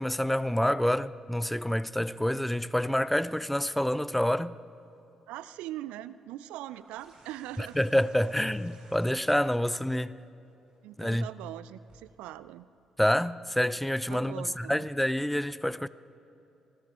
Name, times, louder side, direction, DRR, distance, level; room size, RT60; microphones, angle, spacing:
voice 1, 0.0-4.6 7.6-10.1 11.0-11.3 13.0-15.9, equal, 5° left, 0.4 m, -27 dB
voice 2, 5.3-7.8 10.8-12.7 14.1-14.9, right 14 dB, 70° right, 0.3 m, -41 dB
sound 1, 6.7-12.0 13.3-13.4, right 3 dB, 50° right, 4.6 m, -59 dB
27.0 x 20.5 x 2.5 m
figure-of-eight pair, 40°, 2 cm